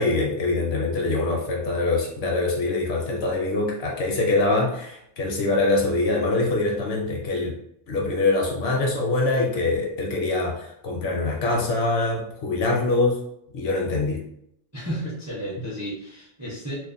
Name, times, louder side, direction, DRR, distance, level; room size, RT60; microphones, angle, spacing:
voice 1, 0.0-7.5 7.9-13.2 13.5-14.2, left 2 dB, 65° left, 0 dB, 0.7 m, -24 dB
voice 2, 14.7-16.7, equal, 20° right, -6 dB, 0.4 m, -32 dB
2.5 x 2.1 x 2.5 m, 0.75 s
omnidirectional pair, 1.2 m